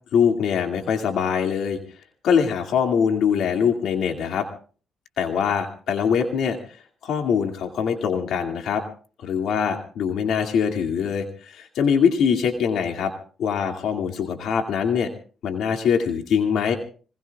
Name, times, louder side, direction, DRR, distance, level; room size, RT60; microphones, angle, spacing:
voice 1, 0.1-1.8 2.2-4.5 5.2-6.6 7.0-8.8 9.2-13.1 13.4-15.1 15.4-16.8, left 7 dB, 75° left, 4 dB, 2.3 m, -23 dB
25.0 x 21.5 x 2.4 m, 0.41 s
cardioid pair, 90°, 0 cm